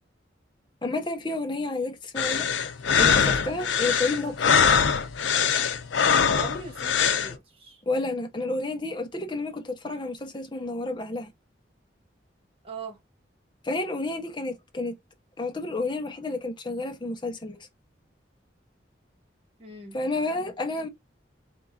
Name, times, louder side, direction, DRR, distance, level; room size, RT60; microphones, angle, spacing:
voice 1, 0.8-2.5 3.0-4.7 7.9-11.3 13.6-15.0 15.4-17.6 19.9-20.9, left 2 dB, 25° left, 0.7 m, -30 dB
sound 1, 2.2-7.4, left 6 dB, 85° left, 0.5 m, -23 dB
voice 2, 6.2-7.8 12.6-13.0 19.6-20.0, right 3 dB, 30° right, 1.3 m, -41 dB
3.8 x 3.6 x 2.4 m
head